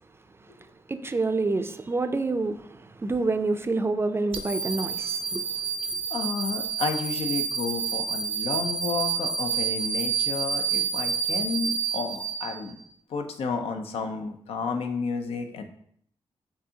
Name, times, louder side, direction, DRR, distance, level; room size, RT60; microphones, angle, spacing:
voice 1, 0.4-6.0, right 3 dB, 25° right, 0.4 m, -28 dB
sound 1, 4.3-12.8, right 6 dB, 70° right, 0.5 m, -29 dB
voice 2, 6.1-12.8 13.1-15.6, left 4 dB, 80° left, 0.6 m, -31 dB
6.4 x 2.7 x 2.8 m
cardioid pair, 85°, 10 cm